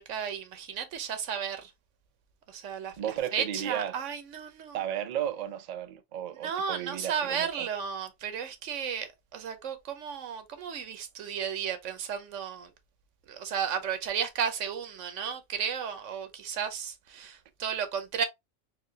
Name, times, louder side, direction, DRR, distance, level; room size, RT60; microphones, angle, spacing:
voice 1, 0.0-1.7 2.5-4.8 6.4-12.7 13.3-18.2, right 7 dB, 85° right, 1.1 m, -34 dB
voice 2, 3.0-4.0 4.7-7.7, right 10 dB, 55° right, 0.4 m, -34 dB
4.1 x 2.6 x 2.8 m
omnidirectional pair, 1.2 m